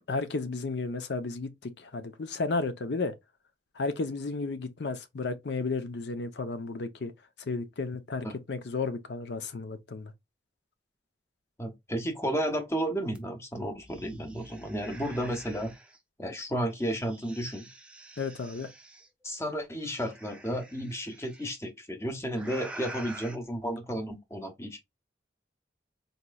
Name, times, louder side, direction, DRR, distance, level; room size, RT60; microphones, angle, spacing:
voice 1, 0.1-3.1 3.8-7.1 7.5-10.1 18.2-18.7, left 3 dB, 65° left, 0.6 m, -33 dB
voice 2, 11.6-15.7 16.2-17.7 19.2-24.8, equal, 15° left, 0.8 m, -33 dB
sound 1, 13.1-13.2 13.6-16.0 16.7-19.1 19.9-21.5 22.3-23.4, right 2 dB, 5° right, 0.4 m, -47 dB
4.1 x 2.9 x 2.2 m
head